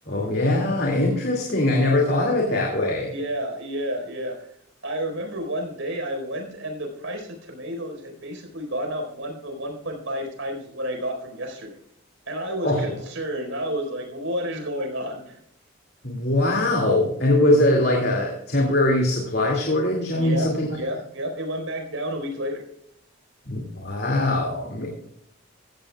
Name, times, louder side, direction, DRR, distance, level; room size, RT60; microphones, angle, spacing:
voice 1, 0.0-3.1 12.6-12.8 16.0-20.7 23.5-24.9, left 1 dB, 50° left, 0 dB, 2.3 m, -22 dB
voice 2, 3.1-4.5 4.8-11.8 12.3-15.4 20.2-22.6, equal, 75° right, 3 dB, 4.4 m, -31 dB
16.0 x 15.0 x 2.4 m, 0.72 s
head